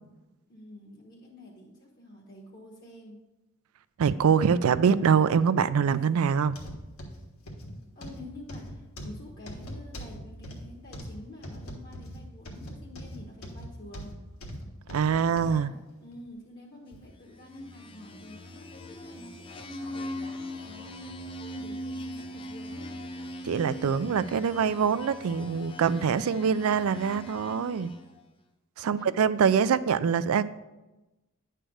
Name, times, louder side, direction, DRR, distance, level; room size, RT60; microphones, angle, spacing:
voice 1, 0.5-3.2 4.1-4.8 7.9-14.2 15.0-23.0 28.8-29.7, left 2 dB, 45° left, -1 dB, 1.1 m, -48 dB
voice 2, 4.0-6.6 14.9-15.7 23.4-27.9 28.8-30.4, right 6 dB, 80° right, 16 dB, 0.4 m, -24 dB
sound 1, 6.5-15.6 16.1-16.3 16.9-17.0, equal, 75° left, 1.4 m, -41 dB
sound 2, 17.3-28.2, left 1 dB, 25° left, 0.5 m, -40 dB
9.9 x 3.3 x 6.3 m, 1.0 s
head